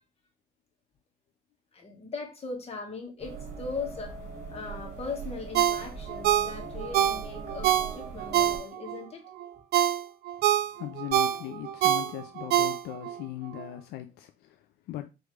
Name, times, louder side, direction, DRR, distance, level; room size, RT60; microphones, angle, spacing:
voice 1, 1.7-4.2 4.5-9.2, left 4 dB, 35° left, 1.6 m, -39 dB
sound 1, 3.2-8.6, right 4 dB, 45° right, 2.9 m, -41 dB
Ringtone, 5.5-9.0 9.4-13.2 13.6-13.7, right 11 dB, 70° right, 0.4 m, -26 dB
voice 2, 10.7-15.1, left 14 dB, 75° left, 0.5 m, -39 dB
5.0 x 3.1 x 3.2 m
cardioid pair, 110°, 17 cm